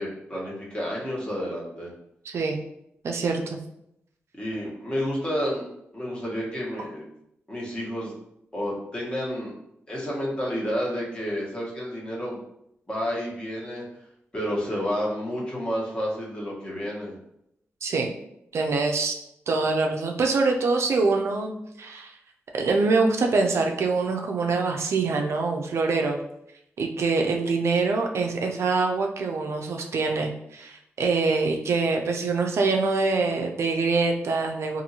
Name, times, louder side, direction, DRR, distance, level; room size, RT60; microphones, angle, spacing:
voice 1, 0.0-1.9 4.4-5.6 5.9-7.0 7.5-8.1 8.5-9.5 9.9-12.4 12.9-14.0 14.3-17.2, equal, 20° left, -5 dB, 1.2 m, -30 dB
voice 2, 2.3-2.6 3.0-3.6 17.8-18.1 18.5-19.2 19.5-22.1 22.5-26.2 26.8-34.8, right 3 dB, 70° right, 2 dB, 0.4 m, -24 dB
2.7 x 2.5 x 2.8 m, 0.79 s
cardioid pair, 55°, 5 cm